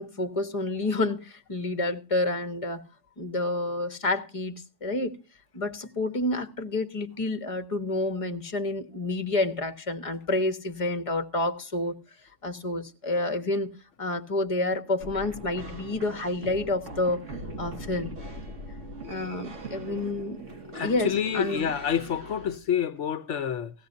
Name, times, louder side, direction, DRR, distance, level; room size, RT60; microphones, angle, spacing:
voice 1, 0.0-2.8 3.2-5.1 5.5-12.0 12.4-13.7 14.0-17.2 17.6-18.1 19.1-20.4 20.7-21.7, left 2 dB, 30° left, 1.4 m, -29 dB
sound 1, 15.0-22.6, right 1 dB, 90° right, 2.4 m, -40 dB
voice 2, 20.7-23.7, left 8 dB, 75° left, 1.1 m, -28 dB
18.0 x 15.5 x 2.6 m
omnidirectional pair, 1.2 m